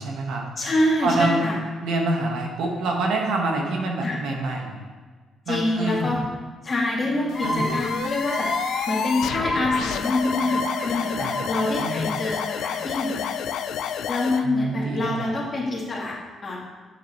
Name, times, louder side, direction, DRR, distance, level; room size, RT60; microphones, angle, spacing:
voice 1, 0.0-0.5 1.0-1.4 1.8-4.8 5.5-6.2 7.4-7.7 11.2-11.4 11.8-12.0 14.4-15.3, right 2 dB, 80° right, 0 dB, 1.4 m, -26 dB
voice 2, 0.6-1.6 4.0-4.2 5.5-6.2 6.6-8.5 8.9-13.3 13.8-16.7, left 2 dB, 35° left, -4 dB, 2.4 m, -26 dB
sound 1, 7.3-14.4, left 8 dB, 80° left, 0.4 m, -30 dB
sound 2, 7.3-12.8, left 1 dB, 10° left, 1.2 m, -31 dB
8.2 x 8.0 x 3.1 m, 1.5 s
cardioid pair, 90°, 0 cm